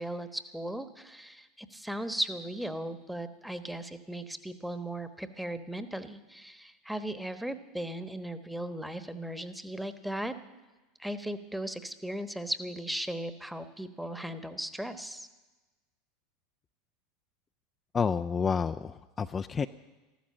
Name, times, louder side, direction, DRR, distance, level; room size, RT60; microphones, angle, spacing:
voice 1, 0.0-10.3 11.0-15.3, right 1 dB, 5° right, 11 dB, 1.1 m, -37 dB
voice 2, 17.9-19.7, left 6 dB, 25° left, 8 dB, 0.4 m, -29 dB
13.5 x 13.5 x 7.6 m, 1.2 s
hypercardioid pair, 80°, 0 cm